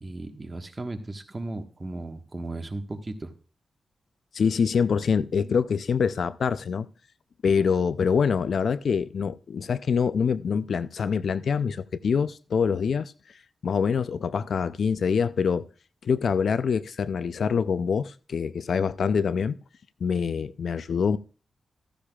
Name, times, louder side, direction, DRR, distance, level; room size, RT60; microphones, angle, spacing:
voice 1, 0.0-3.1, right 2 dB, 30° right, 1.4 m, -36 dB
voice 2, 4.3-6.9 7.4-13.1 13.6-15.7 16.0-19.6 20.0-21.2, left 6 dB, 75° left, 0.4 m, -25 dB
14.5 x 10.0 x 2.4 m
cardioid pair, 65°, 0 cm